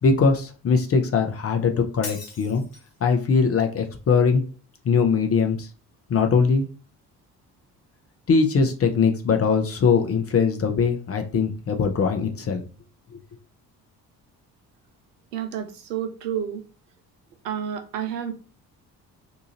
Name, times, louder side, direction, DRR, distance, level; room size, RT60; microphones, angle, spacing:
voice 1, 0.0-2.6 3.0-4.4 4.8-5.7 6.1-6.6 8.3-12.6, left 5 dB, 30° left, 0.6 m, -21 dB
Shatter, 2.0-3.0, left 5 dB, 50° left, 1.1 m, -39 dB
voice 2, 15.3-16.7 17.4-18.3, right 9 dB, 85° right, 0.6 m, -30 dB
2.8 x 2.4 x 2.8 m
figure-of-eight pair, 45°, 47 cm